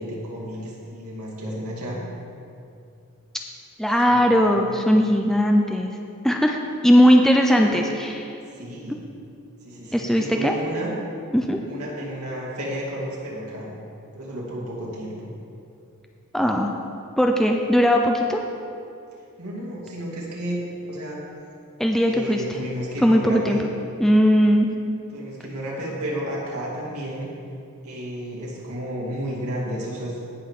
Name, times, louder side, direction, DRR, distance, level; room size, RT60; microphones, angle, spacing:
voice 1, 0.0-2.0 4.0-4.8 7.6-7.9 8.4-9.0 9.6-10.9 11.6-13.7 14.1-15.3 19.4-21.2 22.1-23.7 25.1-27.3 27.8-30.2, equal, 80° right, -5 dB, 2.6 m, -32 dB
voice 2, 3.8-5.9 6.2-6.6 6.8-8.1 9.9-10.5 11.3-11.6 16.3-16.7 17.2-18.4 21.8-22.4 23.0-23.6 24.0-24.7, equal, ahead, 1 dB, 0.5 m, -18 dB
17.5 x 6.4 x 3.8 m, 2.5 s
head